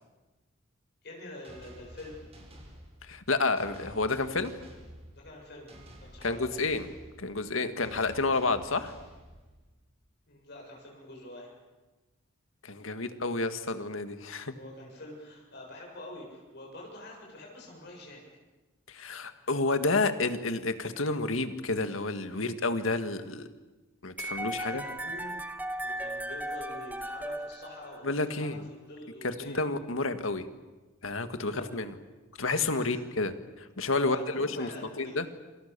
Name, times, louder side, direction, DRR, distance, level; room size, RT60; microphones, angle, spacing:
voice 1, 1.0-2.2 5.1-5.7 6.0-6.5 10.3-11.5 14.6-18.2 24.3-25.4 25.8-28.6 28.9-29.6 31.5-31.6 32.8-33.0 33.9-35.2, left 1 dB, 55° left, -1 dB, 7.1 m, -46 dB
sound 1, 1.4-9.9, equal, 30° right, 5.7 m, -51 dB
voice 2, 3.1-4.5 6.2-6.9 7.2-8.9 12.6-14.5 18.9-23.5 24.0-24.8 28.0-28.6 29.2-30.4 31.0-31.9 32.4-33.3 33.8-34.7 35.0-35.3, left 3 dB, 80° left, 9 dB, 2.0 m, -30 dB
sound 2, 24.2-28.3, right 1 dB, 10° right, 1.2 m, -36 dB
27.5 x 27.0 x 6.9 m, 1.2 s
head